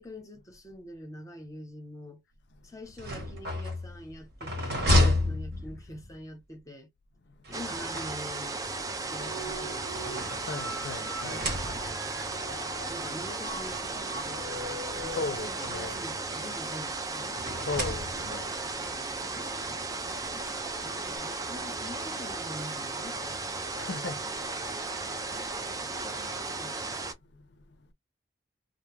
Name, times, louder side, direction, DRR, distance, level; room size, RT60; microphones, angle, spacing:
voice 1, 0.0-2.2 2.6-6.9 7.5-8.6 9.1-10.4 11.2-11.8 12.9-15.2 15.4-17.4 19.0-19.2 19.6-23.2 23.6-23.8 25.6-26.8, left 1 dB, 20° left, 0.8 m, -45 dB
sound 1, 2.8-6.1 7.4-8.6 9.4-10.8 11.2-12.1 13.1-13.2 13.5-13.6 14.8-16.1 17.3-18.5, left 1 dB, 60° right, 1.2 m, -31 dB
voice 2, 4.9-5.2 10.5-11.4 15.2-16.0 17.7-18.5 23.7-24.2, left 3 dB, 65° left, 0.5 m, -35 dB
sound 2, 7.5-27.1, right 3 dB, 20° right, 0.3 m, -35 dB
sound 3, 8.8-15.4, right 1 dB, 85° right, 0.7 m, -42 dB
2.2 x 2.0 x 3.2 m
head